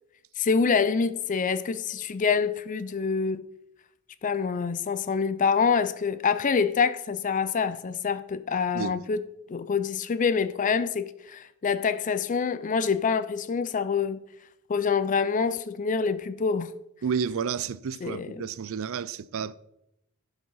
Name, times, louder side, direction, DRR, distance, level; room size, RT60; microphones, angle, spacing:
voice 1, 0.4-3.4 4.2-9.2 9.5-14.2 14.7-16.7 18.0-18.5, left 5 dB, 35° left, 0.4 m, -26 dB
voice 2, 17.0-19.6, right 6 dB, 65° right, 0.4 m, -31 dB
11.5 x 5.1 x 5.5 m
head